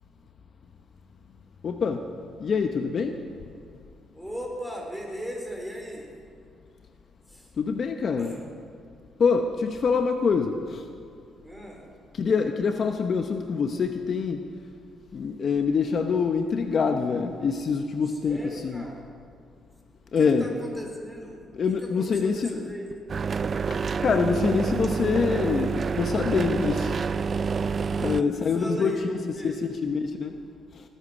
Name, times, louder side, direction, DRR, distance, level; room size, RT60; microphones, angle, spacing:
voice 1, 1.6-2.1 2.4-3.2 7.6-8.4 9.2-10.8 12.1-14.5 15.1-18.8 20.1-20.5 21.5-22.6 23.7-26.9 28.0-29.2 29.4-29.5 29.8-30.4 30.7-30.8, left 5 dB, 50° left, 6 dB, 0.8 m, -25 dB
voice 2, 4.1-6.1 7.3-7.5 8.2-8.5 11.4-11.8 18.1-19.0 20.2-21.4 21.7-22.9 27.9-29.6, equal, ahead, 0 dB, 3.9 m, -37 dB
sound 1, 23.1-28.2, right 5 dB, 45° right, 0.3 m, -27 dB
20.0 x 10.0 x 6.2 m, 2.3 s
cardioid pair, 90°, 0 cm